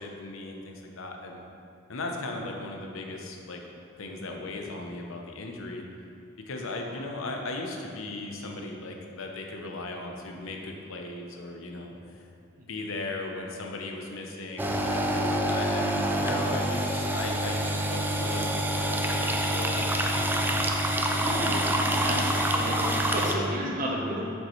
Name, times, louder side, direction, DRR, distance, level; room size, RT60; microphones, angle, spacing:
voice 1, 0.0-1.4 1.9-3.6 4.0-5.9 6.5-12.3 12.7-20.4, left 2 dB, 75° left, 1 dB, 0.8 m, -37 dB
sound 1, 14.6-23.3, right 1 dB, 10° right, 0.4 m, -26 dB
voice 2, 21.2-24.3, equal, 45° right, -3 dB, 1.0 m, -32 dB
7.5 x 5.3 x 3.2 m, 2.7 s
head